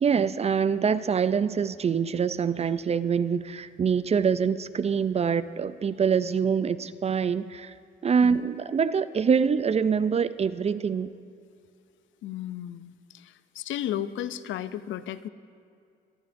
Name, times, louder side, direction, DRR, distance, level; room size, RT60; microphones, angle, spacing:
voice 1, 0.0-7.7 8.0-11.1, right 6 dB, 30° right, 15 dB, 0.4 m, -25 dB
voice 2, 12.2-15.3, left 11 dB, 75° left, 14 dB, 0.5 m, -34 dB
23.0 x 15.0 x 2.6 m, 2.4 s
cardioid pair, 90°, 20 cm